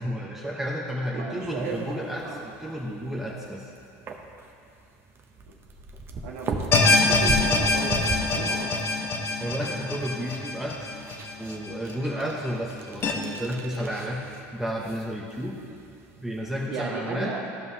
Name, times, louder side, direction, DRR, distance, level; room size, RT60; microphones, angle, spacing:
voice 1, 0.0-3.7 9.4-10.9 11.4-14.2 14.5-15.6 16.2-17.3, equal, 5° right, -4 dB, 0.9 m, -32 dB
voice 2, 1.1-2.4 6.2-8.9 12.1-12.3 16.7-17.5, right 4 dB, 80° right, -2 dB, 1.6 m, -35 dB
sound 1, 1.3-16.7, right 2 dB, 35° right, 0.8 m, -39 dB
sound 2, 6.7-11.9 12.3-12.4 13.0-13.1, left 3 dB, 35° left, 1.0 m, -24 dB
14.5 x 5.3 x 2.8 m, 2.5 s
supercardioid pair, 105°, 7 cm